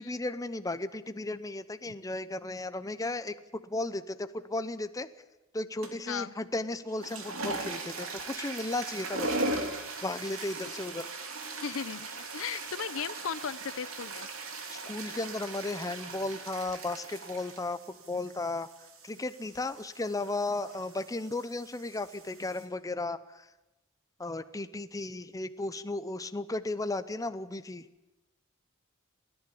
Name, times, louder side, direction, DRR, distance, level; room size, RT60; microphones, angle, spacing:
voice 1, 0.0-5.1 5.5-9.4 10.0-11.1 14.7-18.7 19.0-23.5 24.2-27.9, left 2 dB, 15° left, 12 dB, 0.6 m, -35 dB
sound 1, 5.8-6.2 6.8-22.6, right 2 dB, 75° right, 3.0 m, -39 dB
voice 2, 11.6-14.3, left 7 dB, 70° left, 16 dB, 0.6 m, -36 dB
29.0 x 10.5 x 8.5 m, 1.0 s
head